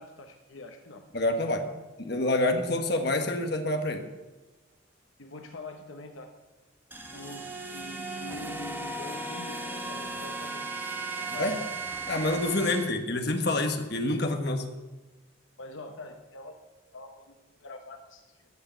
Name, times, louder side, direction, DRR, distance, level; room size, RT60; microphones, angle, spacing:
voice 1, 0.0-1.0 5.2-6.3 7.1-10.8 11.2-11.7 12.6-12.8 15.6-16.6 16.9-18.5, left 2 dB, 75° left, 5 dB, 1.1 m, -45 dB
voice 2, 1.1-1.7 2.0-4.1 11.4-11.6 12.1-14.6, left 2 dB, 55° left, 5 dB, 1.4 m, -27 dB
sound 1, 6.9-12.9, right 2 dB, 10° right, 1.3 m, -36 dB
14.5 x 6.6 x 9.1 m, 1.2 s
head